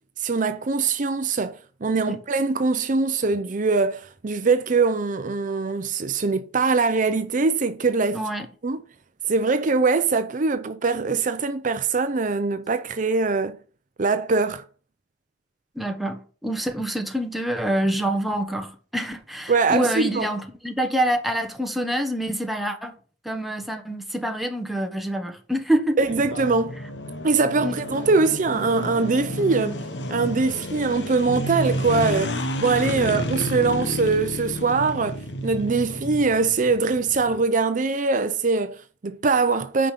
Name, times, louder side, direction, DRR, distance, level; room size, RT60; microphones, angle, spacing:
voice 1, 0.2-8.2 8.6-8.8 9.3-13.6 14.0-14.6 19.5-20.3 26.0-26.7 27.2-29.8 30.1-39.9, right 4 dB, 45° right, 0.6 m, -22 dB
voice 2, 8.1-8.5 15.7-23.0 23.2-26.0 27.6-27.8 33.0-33.1, right 1 dB, ahead, 1.3 m, -26 dB
sound 1, 26.1-37.4, left 1 dB, 75° left, 1.2 m, -31 dB
9.5 x 5.2 x 5.8 m
head